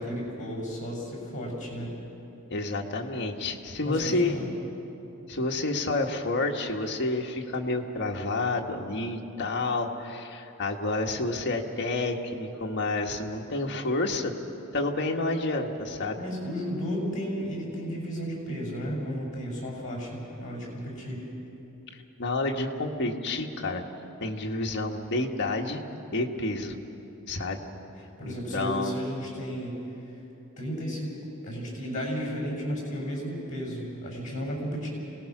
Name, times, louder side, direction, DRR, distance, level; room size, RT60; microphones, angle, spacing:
voice 1, 0.0-2.0 3.8-4.5 16.2-21.3 28.2-30.1 30.6-31.1 31.4-34.9, equal, 35° left, -2 dB, 7.1 m, -33 dB
voice 2, 2.5-4.4 5.3-14.3 14.7-16.2 22.2-23.8 24.2-25.8 26.1-26.7 27.3-27.6 28.2-28.9, left 2 dB, 55° left, 1 dB, 1.6 m, -29 dB
27.0 x 19.0 x 6.1 m, 2.9 s
head